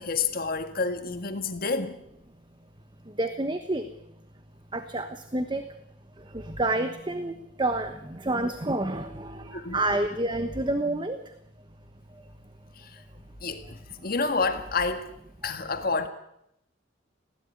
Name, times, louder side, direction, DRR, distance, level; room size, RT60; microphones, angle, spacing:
voice 1, 0.0-2.0 9.5-9.8 12.8-13.0 13.4-15.1 15.4-16.1, left 4 dB, 50° left, 1.8 m, -29 dB
voice 2, 3.2-3.9 4.7-5.6 6.3-11.2 15.4-15.5, right 2 dB, 25° right, 1.2 m, -29 dB
20.0 x 16.5 x 9.5 m
head